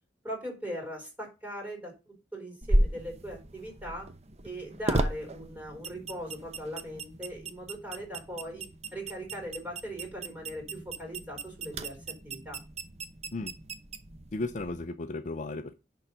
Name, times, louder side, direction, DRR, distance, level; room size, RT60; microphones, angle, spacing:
voice 1, 0.2-4.1 4.4-12.6, equal, 10° right, 2 dB, 4.2 m, -40 dB
sound 1, 2.6-14.9, right 1 dB, 35° right, 0.8 m, -34 dB
voice 2, 14.3-15.7, left 2 dB, 40° left, 10 dB, 0.5 m, -35 dB
10.5 x 3.9 x 5.6 m, 0.29 s
head